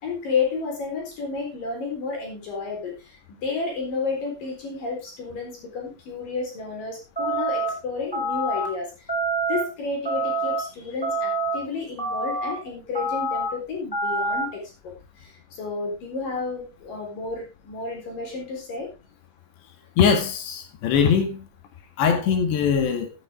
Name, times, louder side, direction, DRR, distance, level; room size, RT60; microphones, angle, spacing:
voice 1, 0.0-8.9 9.5-18.9, left 4 dB, 50° left, 1 dB, 5.5 m, -31 dB
sound 1, 7.2-7.7 8.1-8.7 9.1-9.6 10.0-10.6 11.0-11.6 12.0-12.5 12.9-13.5 13.9-14.5, right 2 dB, 5° left, 3.7 m, -26 dB
voice 2, 20.0-21.5 22.0-23.1, left 7 dB, 80° left, 6 dB, 4.2 m, -21 dB
14.0 x 9.6 x 3.6 m, 0.27 s
omnidirectional pair, 5.0 m